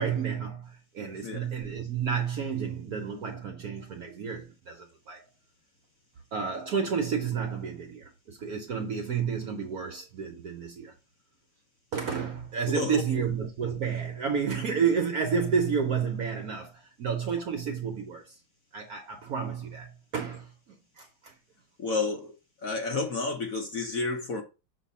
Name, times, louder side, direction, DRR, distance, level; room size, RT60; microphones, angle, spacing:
voice 1, 0.0-5.2 6.3-10.9 11.9-18.4 18.7-21.3, right 6 dB, 60° right, 1.0 m, -31 dB
voice 2, 21.8-22.3 22.6-24.4, left 3 dB, 55° left, 1.1 m, -30 dB
6.6 x 2.7 x 5.4 m
omnidirectional pair, 2.3 m